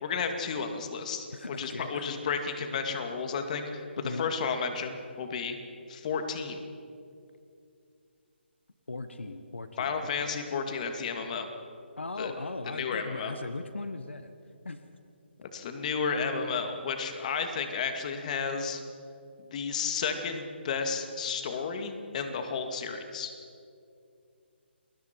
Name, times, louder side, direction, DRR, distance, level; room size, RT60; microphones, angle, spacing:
voice 1, 0.0-1.3 1.6-3.9 4.2-5.6 5.9-6.6 9.8-11.5 12.2-12.3 12.7-13.3 15.4-18.8 19.4-23.3, left 5 dB, 40° left, 6 dB, 2.3 m, -32 dB
voice 2, 1.3-2.1 4.0-4.3 8.9-10.2 12.0-14.3 14.6-14.8, left 3 dB, 85° left, 9 dB, 1.3 m, -38 dB
28.5 x 20.5 x 4.7 m, 2.5 s
figure-of-eight pair, 150°, 6 cm